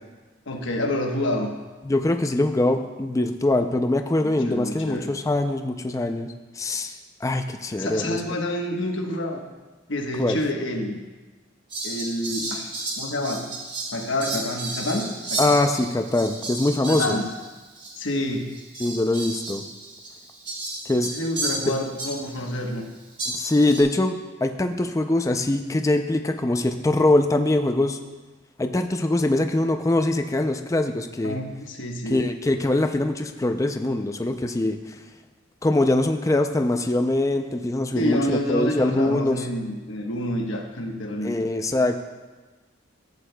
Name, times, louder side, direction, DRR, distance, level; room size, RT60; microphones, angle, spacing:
voice 1, 0.5-1.5 4.2-5.2 7.8-9.4 9.9-11.0 11.8-12.7 13.0-13.4 13.9-15.5 16.9-17.3 17.9-18.5 21.1-22.8 31.2-32.2 37.9-41.3, left 1 dB, 80° left, 2 dB, 1.1 m, -28 dB
voice 2, 1.8-8.2 10.2-10.4 15.4-17.2 18.8-19.6 20.9-21.1 23.3-28.0 28.6-31.4 32.1-35.0 35.6-39.5 41.2-42.0, left 2 dB, 15° left, 5 dB, 0.4 m, -23 dB
Fowl, 11.7-17.5 17.8-17.9 18.5-22.4 23.2-23.8, right 2 dB, 25° right, 2.4 m, -33 dB
14.5 x 8.3 x 2.2 m, 1.3 s
head